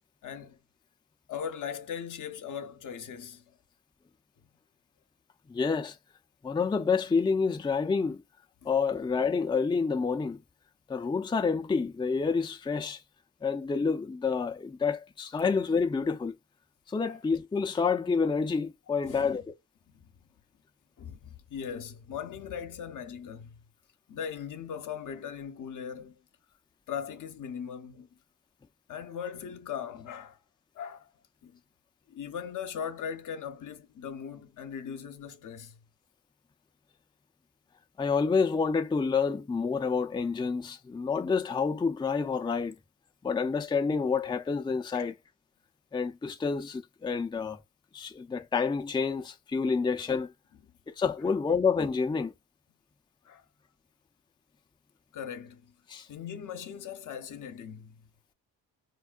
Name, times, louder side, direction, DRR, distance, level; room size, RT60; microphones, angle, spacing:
voice 1, 0.2-0.6 1.3-3.4 8.6-8.7 17.0-17.2 19.0-19.4 19.9-20.1 21.0-23.6 24.1-26.1 26.9-28.1 28.9-30.4 30.8-31.1 31.4-31.6 32.1-35.8 44.9-45.1 53.2-53.4 55.1-55.6 56.1-58.0, left 8 dB, 55° left, 0.8 m, -39 dB
voice 2, 5.5-6.0 6.4-8.2 8.6-10.4 10.9-13.0 13.4-16.3 16.9-19.5 38.0-42.7 43.2-45.1 45.9-47.6 47.9-50.3 51.0-52.3 55.9-56.1, left 5 dB, 15° left, 0.5 m, -28 dB
4.5 x 2.1 x 2.3 m
supercardioid pair, 55°, 36 cm